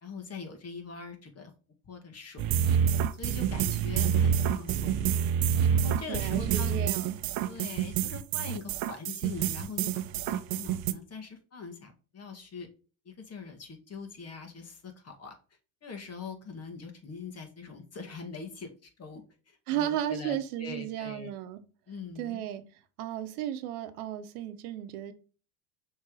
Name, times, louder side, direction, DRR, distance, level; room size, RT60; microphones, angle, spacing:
voice 1, 0.0-1.5 1.8-2.7 3.2-5.1 5.7-6.8 7.5-12.7 13.1-15.3 15.8-21.3 21.9-22.4, left 4 dB, 35° left, 1.9 m, -42 dB
sound 1, 2.4-10.9, right 8 dB, 50° right, 0.8 m, -27 dB
voice 2, 6.1-7.2 19.7-21.6 22.2-22.6 23.0-25.1, right 11 dB, 75° right, 1.0 m, -34 dB
6.2 x 3.6 x 4.8 m
hypercardioid pair, 85°, 44 cm